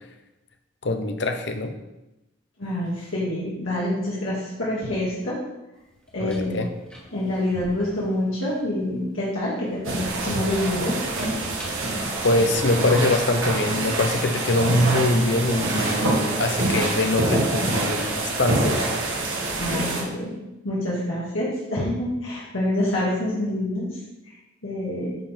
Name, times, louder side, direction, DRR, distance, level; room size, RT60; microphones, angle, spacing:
voice 1, 0.8-1.7 6.2-6.7 12.2-18.9, left 2 dB, 55° left, 7 dB, 0.8 m, -23 dB
voice 2, 2.6-5.4 6.1-6.6 7.1-10.9 16.0-16.1 19.6-20.3 20.6-23.9 24.6-25.2, left 1 dB, 75° left, -7 dB, 2.0 m, -26 dB
sound 1, 5.9-9.2 9.6-13.0, left 1 dB, 5° left, 1.4 m, -42 dB
sound 2, 9.8-20.0, right 2 dB, 75° right, 1.6 m, -26 dB
10.5 x 4.0 x 4.4 m, 0.96 s
head